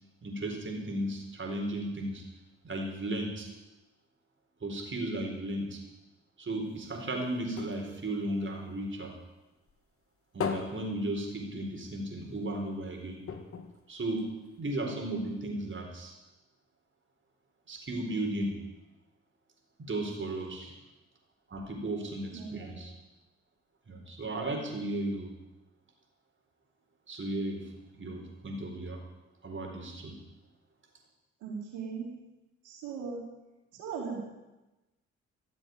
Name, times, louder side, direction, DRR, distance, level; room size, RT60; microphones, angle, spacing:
voice 1, 0.2-2.2 2.6-3.5 4.6-5.8 6.4-9.1 10.3-13.2 13.9-16.1 17.7-18.6 19.8-20.7 21.5-22.9 23.9-25.3 27.1-29.0 29.4-30.2, right 1 dB, 40° right, 2 dB, 4.4 m, -35 dB
sound 1, 6.6-9.3 9.7-11.9 12.3-12.4 12.6-12.8 13.2-14.8 15.4-15.5, left 6 dB, 50° left, 2.0 m, -40 dB
voice 2, 22.3-22.8 31.4-32.1 32.6-33.2 33.7-34.2, right 5 dB, 85° right, -3 dB, 4.7 m, -38 dB
14.5 x 7.6 x 9.5 m, 1.1 s
supercardioid pair, 60°, 30 cm